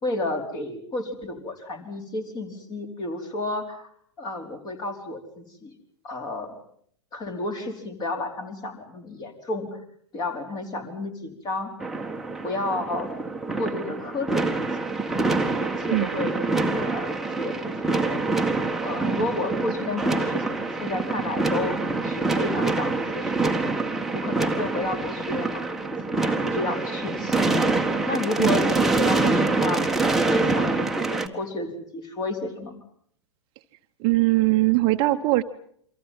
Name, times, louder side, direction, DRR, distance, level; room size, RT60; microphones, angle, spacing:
voice 1, 0.0-3.9 4.2-5.7 6.0-6.5 7.1-9.7 10.1-11.7 12.4-13.1 13.6-14.7 15.5-18.2 18.8-21.7 22.0-23.7 24.1-25.8 26.0-27.6 28.1-29.8 30.2-32.8, left 2 dB, 25° left, 5 dB, 4.7 m, -31 dB
sound 1, 11.8-31.3, right 3 dB, ahead, 1.6 m, -25 dB
voice 2, 15.9-16.3 28.4-28.7 34.0-35.4, right 19 dB, 35° right, 8 dB, 1.1 m, -21 dB
28.5 x 25.0 x 5.7 m, 0.64 s
figure-of-eight pair, 105°, 15 cm